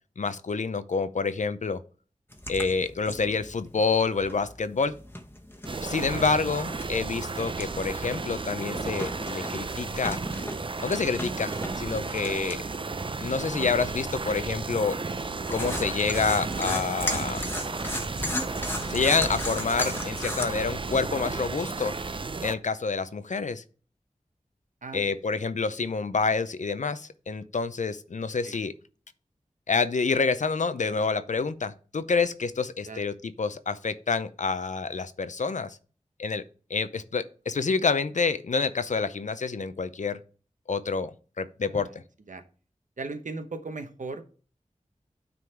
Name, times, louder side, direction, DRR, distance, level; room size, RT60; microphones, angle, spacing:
voice 1, 0.2-1.8 2.5-4.9 5.8-10.2 10.8-12.6 13.2-15.0 15.5-17.4 18.9-21.9 22.4-23.6 24.9-28.7 29.7-35.8 36.2-36.4 36.7-40.2 40.7-41.9, left 4 dB, 70° left, 13 dB, 0.6 m, -28 dB
sound 1, 2.3-20.5, left 1 dB, 15° left, 1.1 m, -37 dB
voice 2, 3.1-3.4 6.0-6.3 24.8-25.4 28.4-28.6 30.9-31.0 32.8-33.1 41.6-42.0 42.3-42.4 43.0-44.3, right 3 dB, 80° right, 8 dB, 0.9 m, -39 dB
sound 2, 5.6-22.5, right 3 dB, 40° right, 0.5 m, -33 dB
9.4 x 3.8 x 4.5 m, 0.39 s
wide cardioid pair, 65°, 13 cm